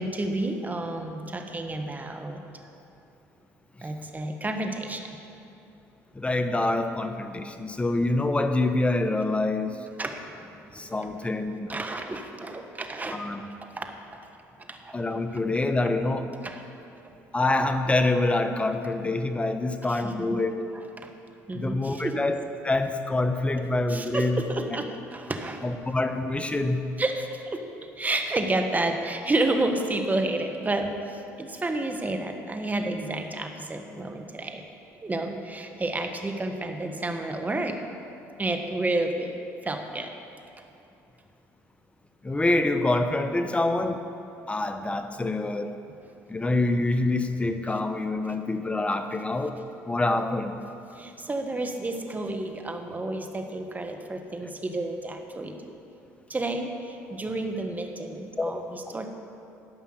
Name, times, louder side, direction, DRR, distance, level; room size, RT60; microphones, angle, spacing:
voice 1, 0.0-2.4 3.8-5.1 10.0-10.9 11.7-13.2 13.7-13.9 14.2-14.3 14.6-14.9 16.4-16.6 19.9-20.4 20.7-21.1 21.5-22.2 23.9-25.6 27.0-27.6 28.0-34.6 35.0-37.8 38.4-39.3 39.6-40.1 47.7-47.8 48.2-48.4 50.9-55.7 56.3-59.1, right 2 dB, 25° right, 5 dB, 1.4 m, -30 dB
voice 2, 6.2-9.7 10.8-11.7 13.1-13.4 14.9-16.3 17.3-20.6 21.5-24.4 25.6-26.8 42.2-44.0 44.5-45.7 46.3-49.6 49.9-50.5 58.4-58.6 58.9-59.0, left 2 dB, 15° left, 8 dB, 0.9 m, -26 dB
13.0 x 5.5 x 7.9 m, 2.7 s
supercardioid pair, 65°, 7 cm